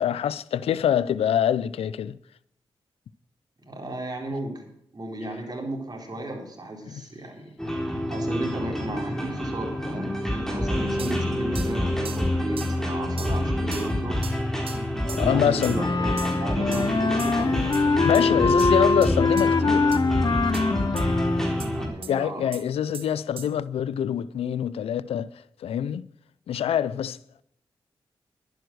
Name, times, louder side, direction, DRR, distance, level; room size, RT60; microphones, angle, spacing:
voice 1, 0.0-2.2 6.9-7.0 15.0-15.8 18.0-19.9 22.1-25.3 25.6-26.0 26.5-27.4, left 9 dB, 85° left, 0.4 m, -25 dB
voice 2, 3.7-4.7 4.9-7.5 8.1-14.3 15.0-17.7 21.7-22.4, right 1 dB, 40° right, 4.3 m, -34 dB
sound 1, 7.6-21.9, left 1 dB, 5° left, 4.1 m, -27 dB
sound 2, 11.0-11.2 11.5-11.7 12.0-12.2 12.6-12.8 13.2-13.4 13.7-13.9 14.2-14.4 14.7-14.8 15.1-15.3 15.6-15.8 16.2-16.4 16.7-16.9 17.2-17.4 17.7-17.8 18.1-18.2 18.6-18.7 19.0-19.1 19.4-19.5 19.9-20.0 20.5-20.6 21.0-21.1 21.6-21.7 22.0-22.1 22.5-22.6 22.9-23.1 23.4-23.5, right 6 dB, 70° right, 1.3 m, -39 dB
Wind instrument woodwind instrument, 15.7-21.6, left 3 dB, 45° left, 0.9 m, -23 dB
11.5 x 9.4 x 6.4 m
cardioid pair, 50°, 10 cm